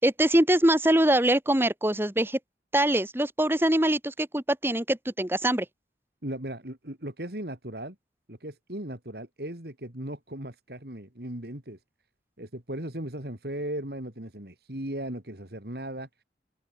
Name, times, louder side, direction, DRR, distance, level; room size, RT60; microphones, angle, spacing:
voice 1, 0.0-2.4 2.7-5.6, right 1 dB, 10° right, 1.4 m, -23 dB
voice 2, 6.2-8.0 8.3-11.8 12.4-16.1, right 1 dB, 55° right, 3.4 m, -37 dB
open air
head